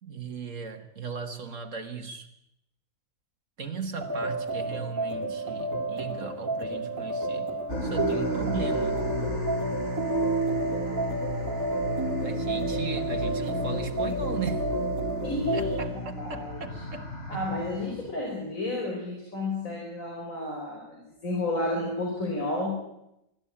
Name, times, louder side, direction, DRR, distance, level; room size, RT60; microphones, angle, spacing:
voice 1, 0.0-2.3 3.6-7.5 7.8-9.0 12.2-14.7 15.5-17.5, right 5 dB, 65° right, 5 dB, 1.8 m, -37 dB
sound 1, 4.0-15.9, right 2 dB, 15° right, 2.0 m, -31 dB
sound 2, 7.7-18.3, left 1 dB, 55° left, 4.5 m, -33 dB
voice 2, 15.2-16.6 17.3-22.8, left 2 dB, 75° left, -1 dB, 5.1 m, -32 dB
25.0 x 12.0 x 8.6 m, 0.82 s
omnidirectional pair, 1.4 m